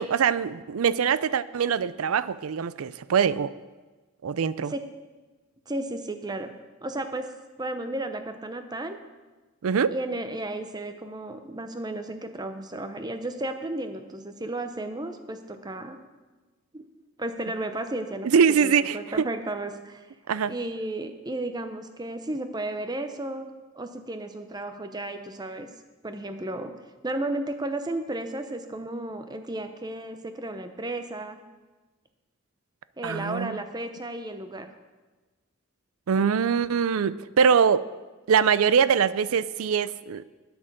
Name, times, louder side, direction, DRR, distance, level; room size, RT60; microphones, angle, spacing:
voice 1, 0.0-3.5 4.2-4.7 9.6-9.9 18.2-19.2 20.3-20.5 33.0-33.5 36.1-37.9 38.3-40.2, right 6 dB, 85° right, 16 dB, 0.4 m, -23 dB
voice 2, 5.7-6.5 6.8-7.3 7.6-9.0 9.9-16.0 16.7-16.9 17.2-20.1 20.5-25.7 26.0-26.7 27.0-31.4 33.0-34.7, right 1 dB, 20° right, 7 dB, 0.7 m, -33 dB
9.8 x 8.7 x 6.7 m, 1.2 s
head